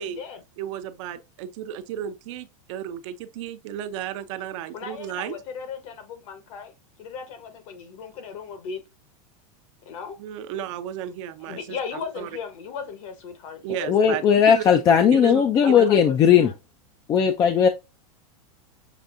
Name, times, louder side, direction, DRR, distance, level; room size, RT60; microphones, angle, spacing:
voice 1, 0.0-0.4 4.7-8.8 9.8-10.2 11.4-13.9 15.6-16.5, left 6 dB, 60° left, 1.2 m, -37 dB
voice 2, 0.6-5.3 10.2-12.3 13.6-14.6 15.1-15.9, right 10 dB, 55° right, 0.6 m, -33 dB
voice 3, 13.9-16.5 17.1-17.7, left 7 dB, 20° left, 0.3 m, -17 dB
6.7 x 2.5 x 2.5 m
supercardioid pair, 145°, 19 cm